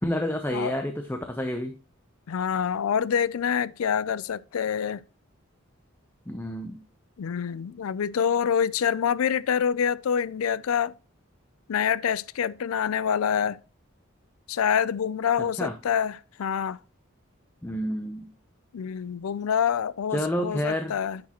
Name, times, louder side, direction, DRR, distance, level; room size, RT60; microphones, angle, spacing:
voice 1, 0.0-1.7 6.3-6.8 15.4-15.8 17.6-18.3 20.1-20.9, equal, 10° left, 0.6 m, -29 dB
voice 2, 2.3-5.0 7.2-10.9 11.7-13.6 14.5-16.8 18.7-21.2, left 8 dB, 85° left, 0.4 m, -26 dB
10.0 x 6.2 x 2.9 m
head